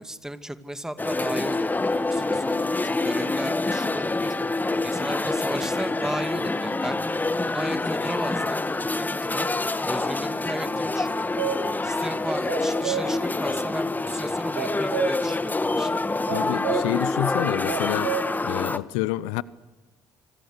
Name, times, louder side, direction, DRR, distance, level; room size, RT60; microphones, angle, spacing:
voice 1, 0.0-4.3 4.8-7.0 7.5-8.6 8.9-9.5 9.8-11.2 11.8-15.9, right 1 dB, 5° right, 2.5 m, -35 dB
sound 1, 1.0-18.8, left 2 dB, 15° left, 1.6 m, -26 dB
sound 2, 11.1-11.8 12.2-12.3 12.5-13.3 14.6-15.3 16.3-17.0 17.7-18.3, right 8 dB, 75° right, 3.2 m, -29 dB
voice 2, 16.3-18.1 18.4-19.4, left 17 dB, 70° left, 0.8 m, -28 dB
27.5 x 25.5 x 6.7 m
hypercardioid pair, 55°, 10 cm